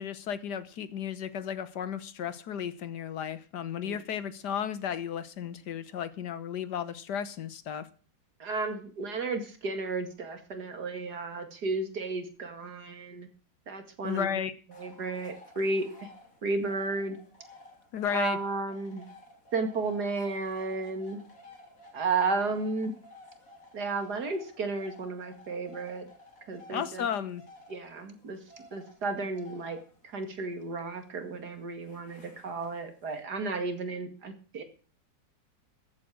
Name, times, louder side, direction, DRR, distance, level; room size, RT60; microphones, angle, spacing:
voice 1, 0.0-7.8 14.0-14.5 17.9-18.4 26.7-27.4, left 8 dB, 70° left, 14 dB, 1.6 m, -34 dB
voice 2, 8.4-13.3 13.7-14.4 14.7-16.1 16.4-17.2 18.1-19.0 19.5-21.2 21.9-22.9 23.7-26.1 26.5-27.1 27.7-28.4 28.7-29.8 30.0-34.6, right 3 dB, 65° right, 7 dB, 2.7 m, -33 dB
sound 1, 14.7-33.2, left 2 dB, 50° left, 3.5 m, -54 dB
14.0 x 8.4 x 6.4 m, 0.39 s
omnidirectional pair, 1.9 m